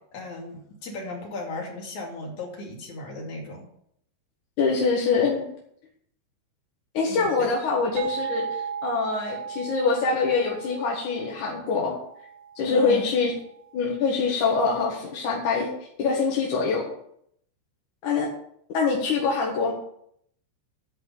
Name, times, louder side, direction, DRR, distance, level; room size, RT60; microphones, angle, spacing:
voice 1, 0.1-3.7 7.1-7.5 12.6-13.1, left 2 dB, 45° left, -2 dB, 3.4 m, -36 dB
voice 2, 4.6-5.5 6.9-12.0 12.6-13.3 13.7-15.7 16.0-16.9 18.0-18.3 18.7-19.7, left 4 dB, 60° left, -3 dB, 2.2 m, -24 dB
sound 1, 8.0-13.4, right 7 dB, 75° right, 2.8 m, -36 dB
10.5 x 5.5 x 8.4 m, 0.70 s
omnidirectional pair, 5.8 m